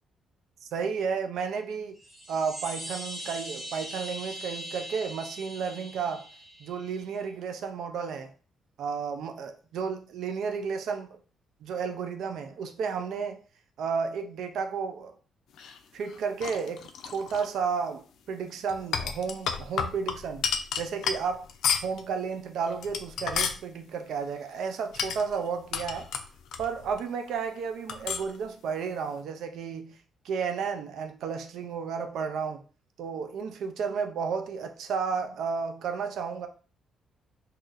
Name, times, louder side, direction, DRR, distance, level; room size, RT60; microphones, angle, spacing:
voice 1, 0.7-2.0 2.3-6.3 6.6-8.3 8.8-11.2 11.6-13.4 13.8-15.1 15.9-20.5 20.8-21.5 21.8-26.1 26.6-30.0 30.2-32.6 33.0-36.5, right 6 dB, 75° right, 0.5 m, -32 dB
sound 1, 2.0-7.0, right 1 dB, 20° right, 1.2 m, -41 dB
sound 2, 15.6-17.5 18.7-22.0 22.7-23.6 24.9-27.0 27.3-27.4 27.9-28.4, left 7 dB, 75° left, 0.4 m, -32 dB
2.7 x 2.5 x 3.9 m
cardioid pair, 90°, 0 cm